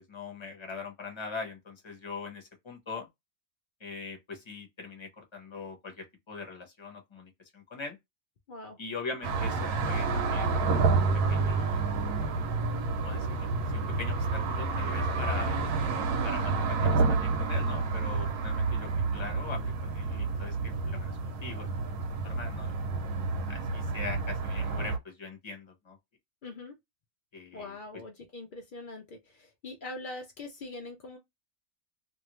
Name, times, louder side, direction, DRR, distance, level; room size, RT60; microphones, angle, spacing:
voice 1, 0.0-3.1 3.8-8.0 8.8-11.9 12.9-15.6 16.2-21.7 22.2-22.8 23.5-26.0 27.3-27.7, left 4 dB, 25° left, 0.6 m, -42 dB
voice 2, 8.5-8.8 26.4-26.7 27.5-31.2, left 2 dB, 80° left, 0.4 m, -43 dB
sound 1, 9.2-25.0, right 3 dB, 85° right, 1.2 m, -29 dB
2.7 x 2.6 x 2.9 m
omnidirectional pair, 1.7 m